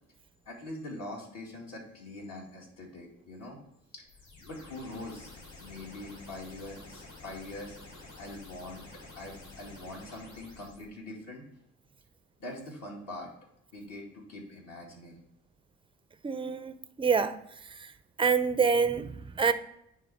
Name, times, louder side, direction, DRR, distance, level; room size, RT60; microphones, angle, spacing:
voice 1, 0.5-3.6 3.9-4.0 4.4-5.3 5.6-7.8 8.2-8.8 9.1-11.4 12.4-13.3 13.7-15.2, left 1 dB, 55° left, 2.3 m, -43 dB
sound 1, 4.1-10.9, left 2 dB, 75° left, 2.5 m, -50 dB
voice 2, 16.2-17.4 17.7-17.9 18.2-19.5, right 5 dB, 15° right, 0.4 m, -27 dB
9.5 x 3.4 x 4.2 m
cardioid pair, 90°, 30 cm